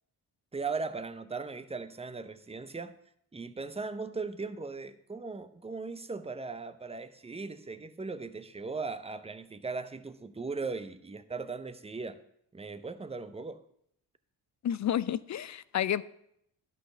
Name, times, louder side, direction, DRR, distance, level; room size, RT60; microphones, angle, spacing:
voice 1, 0.5-2.9 3.3-12.2 12.5-13.6, right 4 dB, 15° right, 0.7 m, -38 dB
voice 2, 14.6-16.0, left 10 dB, 40° left, 0.4 m, -30 dB
11.0 x 4.2 x 6.7 m
supercardioid pair, 55°, 48 cm